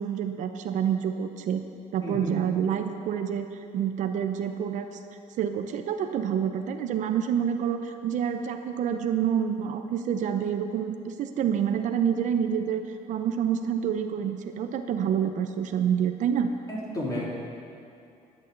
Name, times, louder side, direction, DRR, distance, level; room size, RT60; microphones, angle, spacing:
voice 1, 0.0-1.6 1.9-4.9 5.4-12.8 13.1-16.5, right 8 dB, 65° right, 7 dB, 0.7 m, -27 dB
voice 2, 2.0-2.3 16.7-17.2, left 1 dB, 25° left, -5 dB, 3.4 m, -32 dB
11.0 x 6.3 x 9.1 m, 2.6 s
cardioid pair, 125°, 14 cm